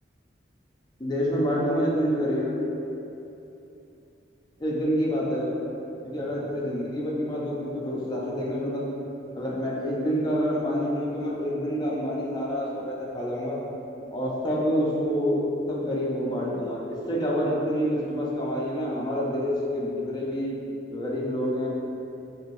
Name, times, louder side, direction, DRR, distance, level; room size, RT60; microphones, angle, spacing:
voice 1, 1.0-2.6 4.6-5.6 6.0-8.9 9.4-13.6 14.1-15.4 15.7-20.5 20.9-21.7, equal, 25° left, -5 dB, 0.4 m, -27 dB
2.7 x 2.6 x 2.9 m, 2.9 s
head